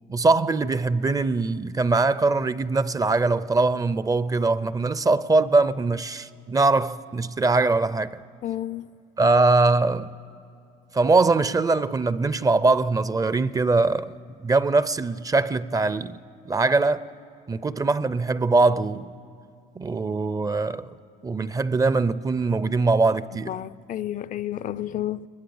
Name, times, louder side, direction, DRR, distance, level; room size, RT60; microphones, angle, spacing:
voice 1, 0.1-8.2 9.2-10.1 10.9-14.1 14.4-16.2 16.5-17.1 17.5-19.1 19.8-20.9 21.2-23.5, right 3 dB, 20° right, 0.5 m, -22 dB
voice 2, 8.4-8.9 23.5-25.3, left 12 dB, 50° left, 0.4 m, -31 dB
21.5 x 21.0 x 7.1 m
cardioid pair, 110°, 17 cm